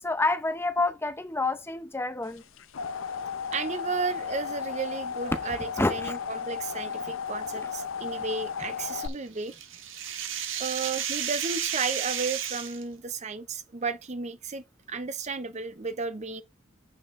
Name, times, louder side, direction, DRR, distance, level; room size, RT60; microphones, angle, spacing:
voice 1, 0.0-2.4 5.5-6.2, left 2 dB, 10° left, 0.7 m, -28 dB
sound 1, 2.4-9.1, left 6 dB, 85° left, 0.7 m, -34 dB
voice 2, 3.5-9.5 10.6-16.4, right 4 dB, 35° right, 0.6 m, -33 dB
sound 2, 9.0-12.8, right 9 dB, 75° right, 1.3 m, -32 dB
8.4 x 6.3 x 3.6 m
head